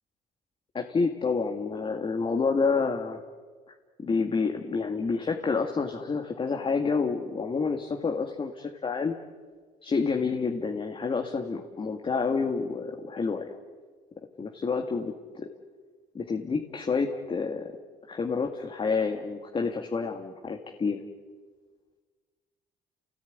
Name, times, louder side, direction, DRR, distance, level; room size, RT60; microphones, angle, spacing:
voice 1, 0.7-3.2 4.0-9.2 9.8-13.5 14.4-15.5 16.1-17.7 18.1-21.0, left 4 dB, 30° left, 3 dB, 2.1 m, -28 dB
29.5 x 17.5 x 9.6 m, 1.5 s
cardioid pair, 110°, 17 cm